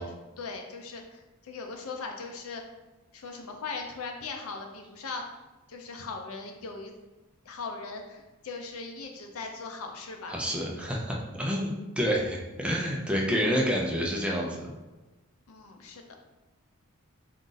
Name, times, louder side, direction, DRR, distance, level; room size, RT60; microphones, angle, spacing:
voice 1, 0.0-2.6 3.1-5.2 5.7-6.9 7.4-10.4 15.5-16.0, left 4 dB, 80° left, 3 dB, 0.6 m, -39 dB
voice 2, 10.3-14.7, equal, 5° right, -2 dB, 0.5 m, -28 dB
3.8 x 2.5 x 3.9 m, 1.1 s
head